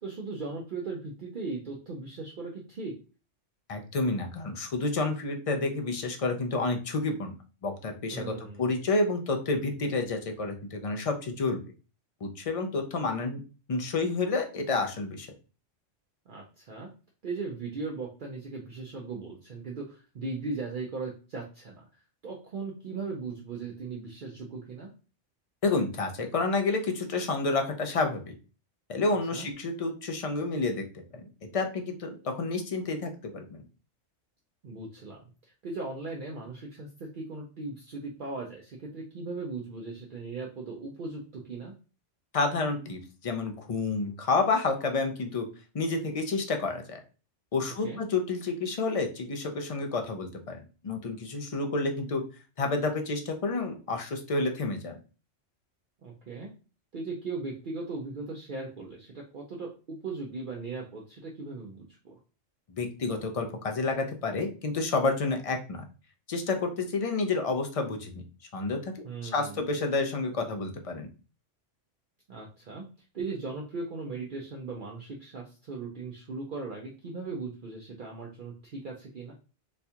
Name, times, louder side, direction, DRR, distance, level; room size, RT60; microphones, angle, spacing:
voice 1, 0.0-3.0 8.1-8.7 16.3-16.9 17.2-21.8 22.2-24.9 29.3-29.5 34.6-41.7 47.8-48.0 56.0-56.5 56.9-62.2 69.0-69.6 72.3-72.9 73.1-79.3, right 3 dB, 50° right, -1 dB, 0.7 m, -38 dB
voice 2, 3.7-7.3 7.6-11.6 12.2-13.4 13.7-15.3 25.6-28.3 28.9-30.8 31.1-31.3 31.5-33.6 42.3-45.5 45.7-47.0 47.5-52.2 52.6-55.0 62.7-65.8 66.3-68.2 68.5-68.9 69.2-71.1, left 3 dB, 45° left, 4 dB, 0.4 m, -29 dB
4.2 x 2.3 x 2.7 m, 0.34 s
omnidirectional pair, 1.3 m